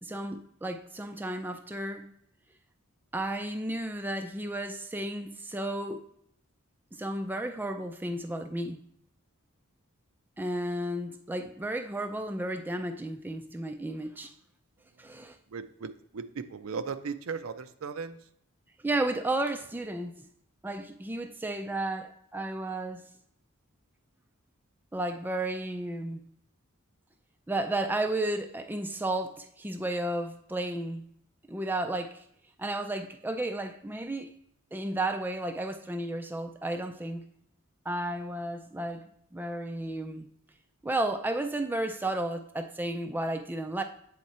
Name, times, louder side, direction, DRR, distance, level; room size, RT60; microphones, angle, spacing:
voice 1, 0.0-2.1 3.1-6.0 6.9-8.8 10.4-14.3 15.0-15.4 18.8-20.3 20.6-23.0 24.9-26.2 27.5-31.1 31.5-32.2 32.6-34.3 34.7-37.3 37.9-40.3 40.8-43.8, right 1 dB, 10° right, 6 dB, 0.3 m, -33 dB
voice 2, 15.5-18.2, right 5 dB, 65° right, 11 dB, 0.5 m, -37 dB
8.0 x 3.6 x 4.2 m, 0.71 s
head